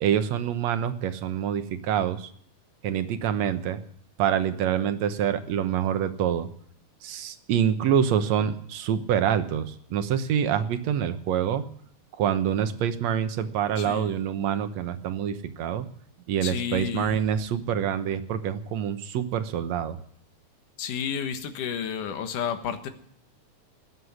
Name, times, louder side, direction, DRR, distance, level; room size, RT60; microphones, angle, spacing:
voice 1, 0.0-2.3 2.8-3.8 4.2-6.5 7.0-11.7 12.2-15.9 16.3-20.0, right 9 dB, 65° right, 10 dB, 2.2 m, -26 dB
voice 2, 13.8-14.2 16.4-17.2 20.8-22.9, left 8 dB, 90° left, 8 dB, 3.0 m, -31 dB
19.5 x 7.7 x 9.6 m, 0.62 s
omnidirectional pair, 3.5 m